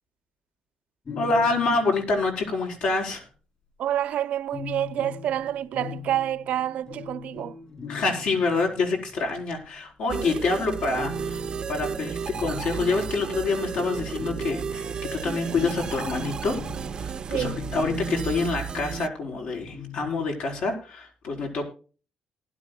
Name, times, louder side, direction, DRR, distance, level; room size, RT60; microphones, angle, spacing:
voice 1, 1.1-3.2 7.9-16.6 17.0-21.7, left 3 dB, 85° left, 4.8 m, -27 dB
Acoustic Venezuelan Cuatro, 1.1-3.2 4.5-9.8 10.9-19.0 19.7-20.7, left 7 dB, 40° left, 2.5 m, -42 dB
voice 2, 3.8-7.5 17.3-17.6, right 11 dB, 75° right, 0.6 m, -28 dB
sound 1, 10.1-19.1, right 6 dB, 35° right, 0.5 m, -33 dB
19.5 x 11.5 x 2.3 m
cardioid pair, 150°, 2 cm